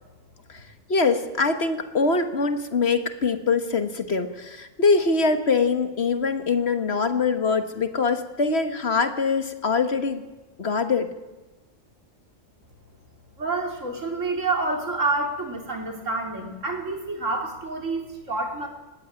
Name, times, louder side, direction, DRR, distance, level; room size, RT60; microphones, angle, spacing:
voice 1, 0.9-10.2 10.6-11.1, left 4 dB, 55° left, 8 dB, 1.7 m, -23 dB
voice 2, 13.4-18.7, right 3 dB, 75° right, 2 dB, 3.7 m, -28 dB
20.5 x 15.5 x 8.9 m, 1.1 s
omnidirectional pair, 1.3 m